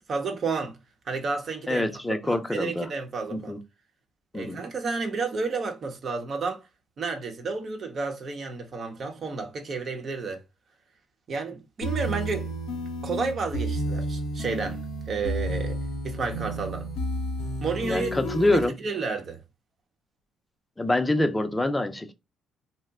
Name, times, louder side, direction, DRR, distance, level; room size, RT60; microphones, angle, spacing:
voice 1, 0.1-0.8 1.1-3.6 4.3-6.6 7.0-10.4 11.3-12.5 13.0-14.8 15.1-16.9 17.6-18.1 18.5-19.4, right 4 dB, 55° right, 0.9 m, -31 dB
voice 2, 1.7-2.9 3.3-3.6 4.3-4.6 17.9-18.7 20.8-22.1, left 2 dB, 15° left, 0.5 m, -25 dB
sound 1, 11.8-18.7, right 1 dB, 80° left, 0.6 m, -31 dB
2.9 x 2.1 x 3.5 m
supercardioid pair, 55°, 0 cm